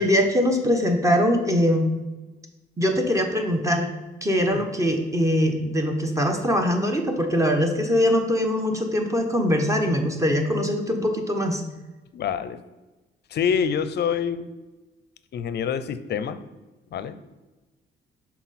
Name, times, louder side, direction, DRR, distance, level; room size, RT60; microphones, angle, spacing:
voice 1, 0.0-1.9 2.8-3.9 4.2-11.6, equal, 15° right, 4 dB, 1.0 m, -22 dB
voice 2, 12.1-12.6 13.3-14.5 15.3-16.4 16.9-17.2, left 7 dB, 55° left, 13 dB, 0.5 m, -26 dB
6.0 x 4.2 x 4.1 m, 1.1 s
cardioid pair, 90°, 20 cm